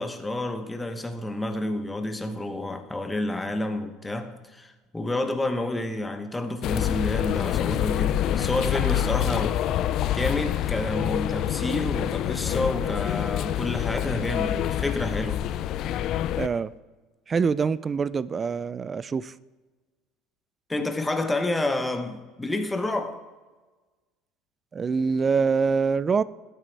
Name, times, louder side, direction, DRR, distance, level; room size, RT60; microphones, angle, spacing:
voice 1, 0.0-9.6 10.1-15.5 20.7-23.2, left 2 dB, 10° left, 0.9 m, -29 dB
sound 1, 6.6-16.5, left 12 dB, 50° left, 0.4 m, -26 dB
voice 2, 16.4-16.7 17.3-19.3 24.7-26.2, right 5 dB, 20° right, 0.3 m, -25 dB
17.5 x 9.1 x 3.4 m
cardioid pair, 145°, 0 cm